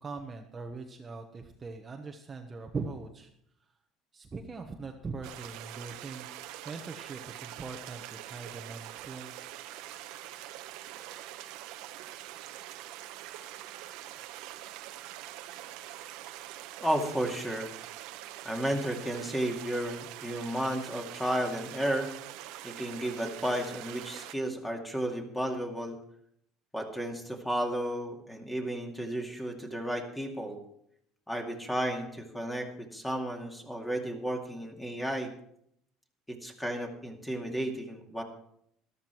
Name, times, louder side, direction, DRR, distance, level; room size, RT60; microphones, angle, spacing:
voice 1, 0.0-3.3 4.1-6.3 6.6-9.5, right 4 dB, 25° right, 3 dB, 1.2 m, -41 dB
sound 1, 5.2-24.3, right 14 dB, 75° right, 1.0 m, -44 dB
voice 2, 16.8-17.7 18.4-22.1 22.6-26.0 26.7-30.6 31.3-35.3 36.3-38.2, right 1 dB, 5° left, 3 dB, 2.4 m, -33 dB
13.5 x 13.0 x 4.6 m, 0.71 s
cardioid pair, 120°, 0 cm